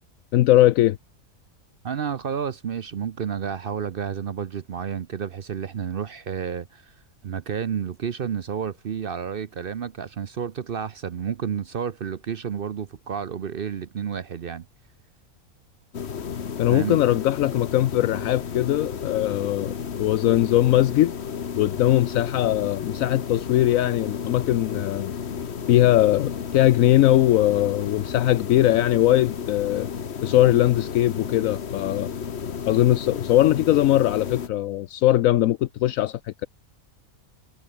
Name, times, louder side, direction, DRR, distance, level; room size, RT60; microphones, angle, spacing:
voice 1, 0.3-1.0 16.6-21.1 21.6-25.1 25.7-29.9 30.2-32.1 32.7-36.5, left 14 dB, 75° left, 1.0 m, -20 dB
voice 2, 1.8-6.9 7.2-14.6 16.7-17.0, right 7 dB, 50° right, 0.7 m, -30 dB
sound 1, 15.9-34.5, left 7 dB, 50° left, 1.4 m, -32 dB
omnidirectional pair, 1.5 m